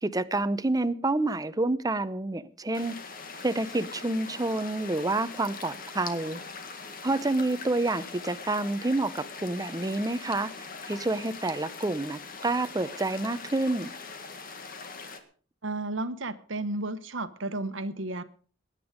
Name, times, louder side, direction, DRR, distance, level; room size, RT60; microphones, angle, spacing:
voice 1, 0.0-2.9 3.4-6.4 7.0-10.5 10.9-13.9, right 2 dB, 20° right, 13 dB, 0.7 m, -28 dB
sound 1, 2.7-15.2, left 4 dB, 50° left, 1.8 m, -42 dB
voice 2, 15.6-18.2, right 2 dB, 75° right, 12 dB, 1.2 m, -33 dB
20.5 x 9.9 x 5.1 m, 0.42 s
head